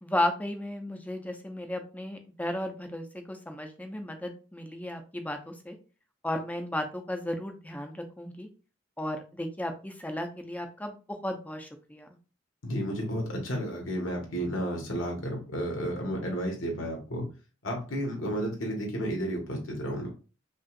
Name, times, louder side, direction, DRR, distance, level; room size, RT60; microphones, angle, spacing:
voice 1, 0.0-5.8 6.2-8.5 9.0-12.1, left 1 dB, 10° left, 5 dB, 0.5 m, -34 dB
voice 2, 12.6-17.3 17.6-20.1, equal, 75° left, 1 dB, 1.5 m, -32 dB
5.3 x 2.4 x 2.5 m, 0.35 s
head